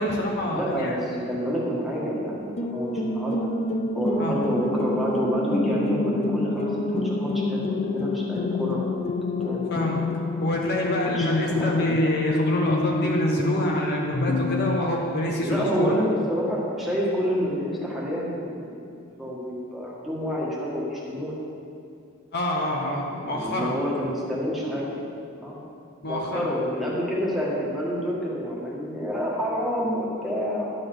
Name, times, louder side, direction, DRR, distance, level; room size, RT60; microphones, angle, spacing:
voice 1, 0.0-1.0 4.2-4.3 9.7-10.0 10.4-15.9 22.3-23.8 26.0-26.5, left 1 dB, 50° left, -1 dB, 0.9 m, -27 dB
voice 2, 0.5-3.3 3.9-9.0 9.4-9.8 11.1-12.0 15.4-18.8 19.2-21.4 23.3-25.1 25.4-25.5 26.1-30.7, equal, ahead, -6 dB, 1.6 m, -28 dB
sound 1, 2.6-14.8, left 2 dB, 30° left, 0.4 m, -27 dB
11.0 x 4.2 x 6.6 m, 2.5 s
head